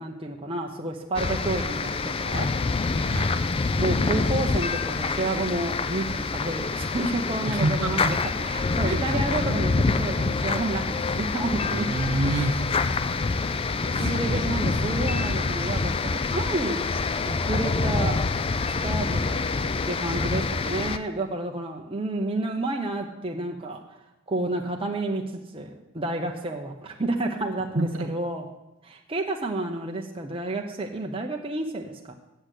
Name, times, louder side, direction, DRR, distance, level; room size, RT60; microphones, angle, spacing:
voice 1, 0.0-2.5 3.8-11.9 14.0-16.8 17.2-18.2 18.8-19.4 19.9-23.8 24.3-28.4 28.8-32.1, right 2 dB, 25° right, 1 dB, 0.8 m, -30 dB
sound 1, 1.2-21.0, left 4 dB, 25° left, 0.4 m, -26 dB
voice 2, 3.0-3.3 7.5-8.1 8.8-9.1 11.7-12.7 13.9-14.8 27.7-28.1, right 2 dB, 70° right, 5 dB, 1.4 m, -28 dB
8.1 x 7.7 x 8.2 m, 0.94 s
head